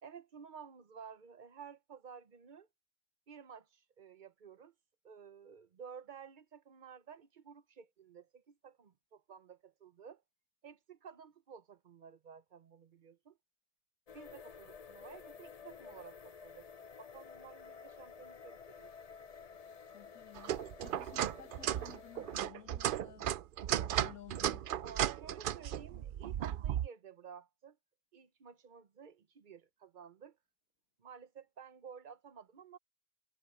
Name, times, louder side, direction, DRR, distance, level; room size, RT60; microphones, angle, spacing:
voice 1, 0.0-2.7 3.3-4.7 5.0-10.2 10.6-13.4 14.1-16.7 17.0-18.9 24.8-27.8 28.1-30.4 31.0-32.8, right 7 dB, 40° right, 0.9 m, -53 dB
sound 1, 14.1-22.5, left 6 dB, 65° left, 0.3 m, -53 dB
voice 2, 19.9-23.4 23.8-24.7, left 11 dB, 85° left, 1.6 m, -55 dB
sound 2, 20.4-26.9, right 11 dB, 80° right, 0.4 m, -35 dB
omnidirectional pair, 1.4 m